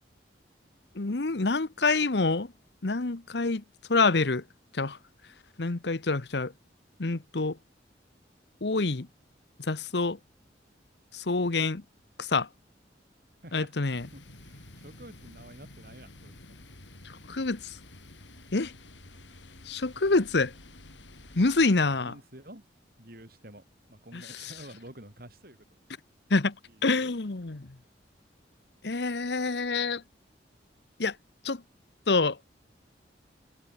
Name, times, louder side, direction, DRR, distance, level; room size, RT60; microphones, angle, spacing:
voice 1, 0.9-2.5 2.8-3.6 3.9-4.4 4.7-5.0 5.6-6.5 7.0-7.6 8.6-9.1 9.7-10.2 11.1-11.8 12.2-12.5 13.5-14.1 17.0-17.8 18.5-18.7 19.7-20.5 21.4-22.1 24.1-24.5 26.3-26.5 26.8-27.7 28.8-30.0 31.0-31.1 31.4-31.6 32.1-32.4, left 3 dB, 70° left, 1.0 m, -27 dB
voice 2, 13.4-16.4 21.8-22.6 23.0-25.6 26.7-27.1, right 1 dB, 55° right, 6.8 m, -50 dB
sound 1, 14.0-21.7, left 2 dB, 90° left, 5.9 m, -50 dB
head